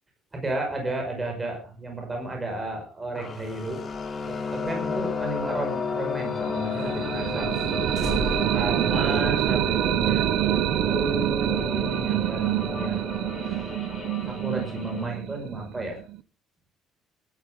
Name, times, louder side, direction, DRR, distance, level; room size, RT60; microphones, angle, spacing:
voice 1, 0.3-3.8 4.2-7.5 8.5-10.6 10.9-13.0 13.4-13.8 14.3-16.0, right 2 dB, 15° right, 2 dB, 5.6 m, -32 dB
sound 1, 3.2-15.1, left 5 dB, 25° left, 2.2 m, -33 dB
sound 2, 3.7-6.4 6.8-6.9 7.2-7.3 7.5-7.7 7.9-9.6, right 2 dB, 40° right, 5.3 m, -39 dB
sound 3, 6.4-16.2, right 14 dB, 65° right, 1.0 m, -26 dB
19.0 x 13.5 x 3.8 m, 0.36 s
cardioid pair, 165°, 0 cm